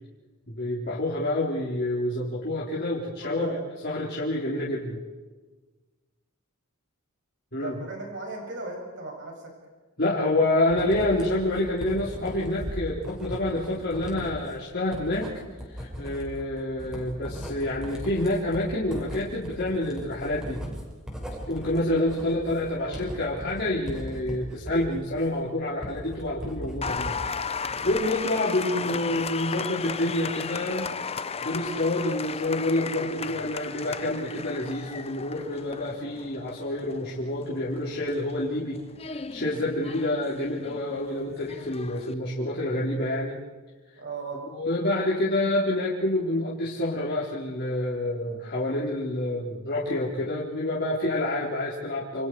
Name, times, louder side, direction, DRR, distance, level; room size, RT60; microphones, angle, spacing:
voice 1, 0.5-3.6 3.8-5.0 7.5-7.8 10.0-15.3 15.7-20.6 21.5-27.2 27.8-30.9 31.4-43.4 44.5-52.3, left 1 dB, 45° left, -6 dB, 4.0 m, -28 dB
voice 2, 3.2-3.6 7.5-9.5 22.7-23.1 28.7-29.2 44.0-44.4, right 2 dB, 55° right, 0 dB, 7.1 m, -37 dB
Writing, 10.7-27.2 27.6-28.3, equal, 5° right, 6.1 m, -38 dB
Applause, 26.8-42.1, left 5 dB, 25° left, 0.8 m, -35 dB
29.5 x 28.5 x 4.8 m, 1.3 s
head